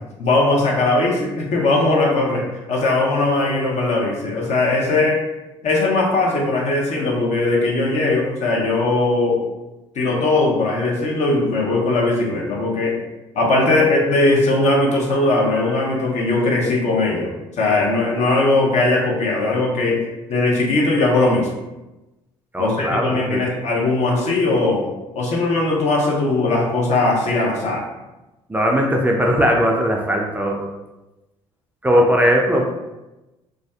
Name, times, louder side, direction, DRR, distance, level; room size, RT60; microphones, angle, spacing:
voice 1, 0.2-5.2 5.6-9.4 9.9-13.0 13.3-17.3 17.6-21.5 22.6-24.8 25.1-27.8 31.9-32.0, left 2 dB, 55° left, -3 dB, 0.7 m, -19 dB
voice 2, 22.5-23.4 28.5-30.7 31.8-32.6, equal, 10° right, 0 dB, 0.4 m, -18 dB
2.4 x 2.3 x 2.3 m, 1.0 s
hypercardioid pair, 50°, 14 cm